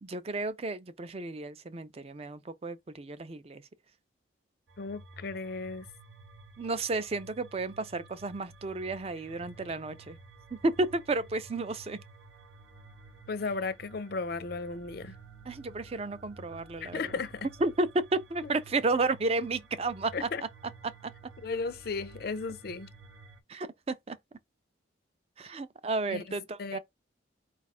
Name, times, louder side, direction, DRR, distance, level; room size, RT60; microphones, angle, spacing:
voice 1, 0.0-3.6 6.6-10.2 10.5-12.0 15.5-17.1 17.6-20.3 20.8-20.9 23.5-24.2 25.4-26.8, right 2 dB, 30° right, 0.4 m, -32 dB
sound 1, 4.7-23.4, right 2 dB, 85° right, 0.8 m, -52 dB
voice 2, 4.8-5.9 13.3-15.2 16.8-17.5 18.4-18.5 20.1-20.4 21.4-22.9 26.1-26.2 26.6-26.8, left 4 dB, 50° left, 0.5 m, -35 dB
4.8 x 2.4 x 4.2 m
head